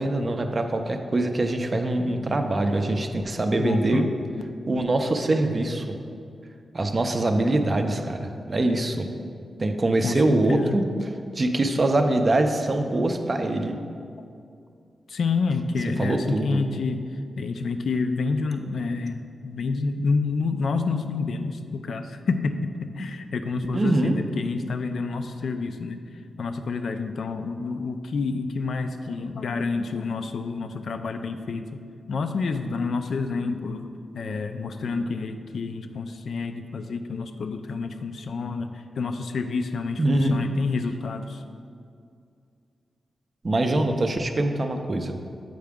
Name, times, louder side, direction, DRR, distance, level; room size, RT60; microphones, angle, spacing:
voice 1, 0.0-4.0 4.7-5.9 6.7-9.1 9.6-10.8 11.4-13.8 16.0-16.6 23.7-24.2 40.0-40.4 43.4-45.2, right 2 dB, 30° right, 5 dB, 0.4 m, -23 dB
voice 2, 3.6-4.1 10.0-10.8 15.1-26.0 26.4-31.8 32.1-41.4, left 4 dB, 65° left, 8 dB, 0.3 m, -28 dB
7.7 x 4.8 x 3.5 m, 2.4 s
wide cardioid pair, 165°, 0 cm